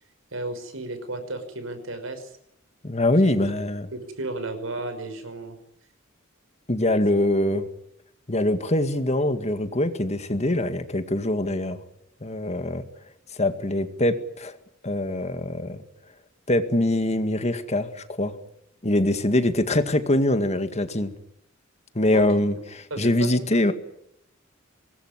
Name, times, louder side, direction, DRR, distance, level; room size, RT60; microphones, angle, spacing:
voice 1, 0.3-2.3 3.1-3.4 3.9-5.6 22.1-22.2 22.9-23.4, right 2 dB, 80° right, 9 dB, 5.6 m, -33 dB
voice 2, 2.8-3.9 6.7-7.7 8.3-11.8 12.2-12.8 13.3-14.6 14.8-15.8 16.5-18.3 18.8-21.1 22.0-23.7, left 1 dB, 35° left, 9 dB, 2.0 m, -23 dB
25.0 x 20.0 x 9.8 m, 0.77 s
head